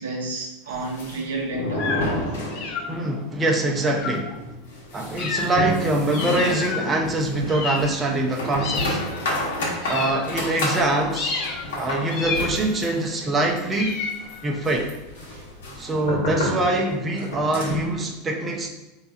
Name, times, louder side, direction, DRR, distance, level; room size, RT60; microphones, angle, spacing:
voice 1, 0.0-2.0 2.5-2.7 7.4-7.5 15.3-15.4, right 2 dB, 75° right, 0 dB, 0.7 m, -31 dB
sound 1, 0.7-3.1 3.3-3.4 3.8-3.9 4.3-18.0, left 1 dB, 70° left, 1.2 m, -30 dB
sound 2, 1.7-2.2 2.5-3.2 3.9-4.4 5.2-5.8 6.1-7.0 7.5-8.3 8.6-9.3 9.8-10.7 11.1-11.7 12.1-12.9 13.7-14.6, left 4 dB, 50° left, 0.7 m, -31 dB
voice 2, 2.9-4.4 4.9-9.0 9.8-11.4 11.8-14.0 14.4-14.9 15.8-18.7, right 2 dB, 20° right, 0 dB, 0.8 m, -24 dB
3.4 x 2.9 x 4.2 m, 0.97 s
figure-of-eight pair, 80°, 0 cm